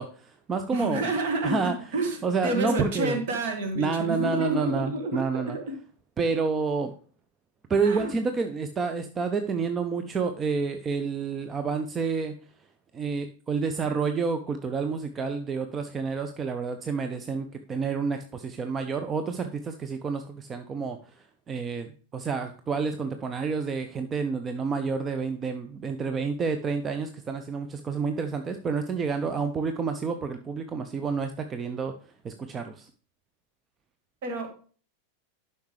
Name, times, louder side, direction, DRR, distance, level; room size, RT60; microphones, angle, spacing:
voice 1, 0.0-1.1 1.4-3.2 3.7-5.6 6.2-6.9 7.7-12.7 12.9-32.9, right 5 dB, 20° right, 8 dB, 0.6 m, -29 dB
voice 2, 0.7-1.6 1.9-2.2 2.4-5.6 7.8-8.2 34.2-34.5, right 2 dB, 50° right, 5 dB, 1.9 m, -29 dB
11.5 x 5.6 x 3.3 m, 0.42 s
figure-of-eight pair, 90°, 0 cm